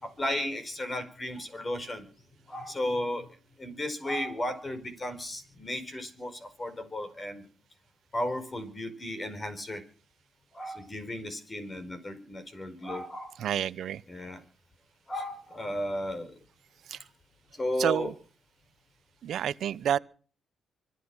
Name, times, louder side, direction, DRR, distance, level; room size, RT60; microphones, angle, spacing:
voice 1, 0.0-2.0 2.5-3.3 3.6-7.4 8.1-9.8 10.5-13.3 14.1-14.4 15.1-16.3 17.6-18.1, left 1 dB, 25° left, 4.7 m, -34 dB
voice 2, 13.4-14.0 16.9-17.0 17.8-18.1 19.2-20.0, right 10 dB, 70° right, 0.8 m, -29 dB
25.0 x 9.4 x 6.2 m
cardioid pair, 90°, 0 cm